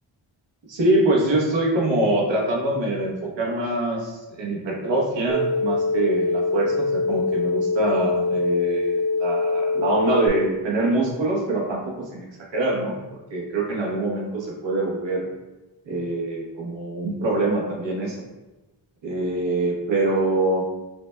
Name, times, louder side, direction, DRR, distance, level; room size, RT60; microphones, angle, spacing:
voice 1, 0.7-15.3 15.9-18.2 19.0-20.6, right 2 dB, 70° right, -2 dB, 1.0 m, -24 dB
sound 1, 5.3-10.3, left 3 dB, 20° right, 0.7 m, -23 dB
5.9 x 2.2 x 2.2 m, 1.1 s
cardioid pair, 55°, 47 cm